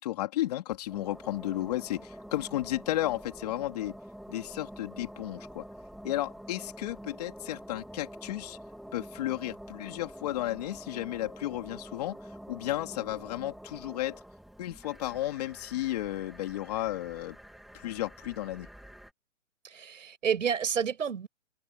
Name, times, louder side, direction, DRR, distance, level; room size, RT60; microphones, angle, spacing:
voice 1, 0.0-4.0 4.3-5.6 6.0-8.6 8.9-12.2 12.5-14.2 14.6-17.4 17.7-18.7, left 15 dB, 30° left, 3.7 m, -33 dB
sound 1, 0.7-19.1, equal, ahead, 2.5 m, -47 dB
voice 2, 19.6-21.3, right 7 dB, 75° right, 6.8 m, -30 dB
open air
hypercardioid pair, 175°, 39 cm